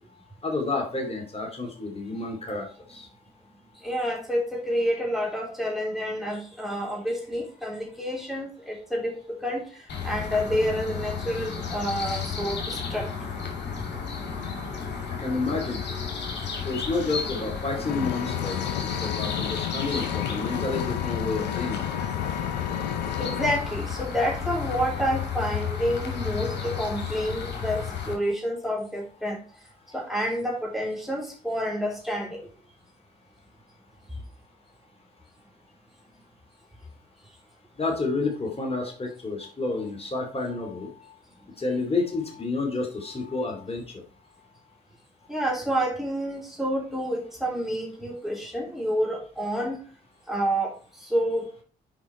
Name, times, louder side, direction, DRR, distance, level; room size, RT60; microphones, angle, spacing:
voice 1, 0.4-2.6 2.9-3.1 15.2-15.8 16.6-18.6 19.0-21.8 37.8-40.9 41.6-43.8, left 3 dB, 30° left, 1 dB, 2.6 m, -29 dB
voice 2, 3.8-13.1 23.2-29.4 29.9-32.4 45.3-49.8 50.3-51.5, equal, ahead, -1 dB, 3.2 m, -29 dB
sound 1, 9.9-28.1, left 6 dB, 55° left, 2.5 m, -33 dB
Vehicle, 17.9-23.6, left 10 dB, 90° left, 0.5 m, -31 dB
7.5 x 5.2 x 4.5 m, 0.41 s
hypercardioid pair, 45°, 21 cm